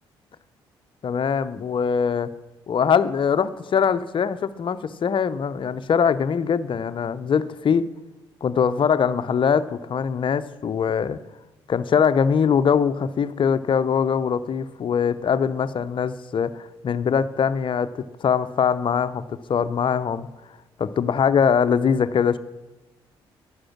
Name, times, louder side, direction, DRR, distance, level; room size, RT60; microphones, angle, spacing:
voice 1, 1.0-2.3 2.7-7.9 8.4-11.2 11.7-20.3 20.8-22.4, left 7 dB, 40° left, 13 dB, 0.7 m, -22 dB
11.5 x 9.4 x 6.0 m, 1.1 s
figure-of-eight pair, 45°, 13 cm